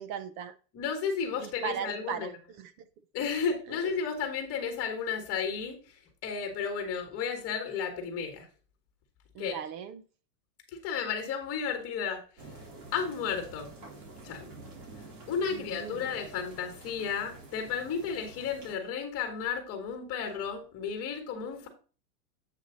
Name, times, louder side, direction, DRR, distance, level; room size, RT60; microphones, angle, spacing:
voice 1, 0.0-0.5 1.4-2.9 3.7-3.8 9.3-10.0 15.5-16.1, right 8 dB, 30° right, 0.6 m, -38 dB
voice 2, 0.7-2.3 3.1-5.8 6.2-8.5 9.4-9.6 10.7-12.2 12.9-13.7 14.2-14.5 15.3-21.7, left 6 dB, 30° left, 2.7 m, -33 dB
sound 1, 12.4-18.7, right 2 dB, 45° right, 3.6 m, -49 dB
8.4 x 6.3 x 3.9 m
supercardioid pair, 145°, 49 cm